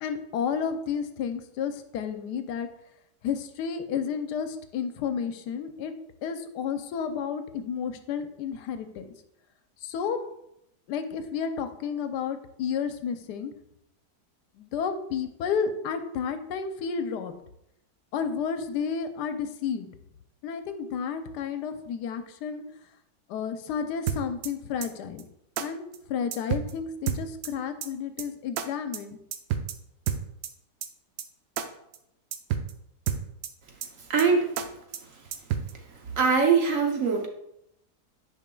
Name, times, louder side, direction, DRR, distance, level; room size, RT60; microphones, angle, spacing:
voice 1, 0.0-2.7 3.2-5.9 6.2-9.1 9.8-10.2 10.9-13.5 14.6-17.3 18.1-19.9 20.4-22.6 23.3-25.2 25.6-25.8 26.1-29.2 34.7-34.8, left 7 dB, 85° left, 9 dB, 1.2 m, -31 dB
sound 1, 24.1-24.5 24.8-24.9 25.2-25.3 25.6-25.7 25.9-26.0 26.3-26.7 27.1-27.5 27.8-27.9 28.2-28.3 28.6-28.7 28.9-29.0 29.3-29.7 30.1-30.5 30.8-30.9 31.2-31.3 31.6-31.7 31.9-32.0 32.3-32.7 33.1-33.5 33.8-33.9 34.2-34.3 34.6-34.7 34.9-35.0 35.3-35.7, right 9 dB, 80° right, 1.2 m, -29 dB
voice 2, 34.1-34.5 36.2-37.3, right 5 dB, 60° right, 2 dB, 1.0 m, -22 dB
9.8 x 5.1 x 2.2 m, 0.80 s
omnidirectional pair, 1.8 m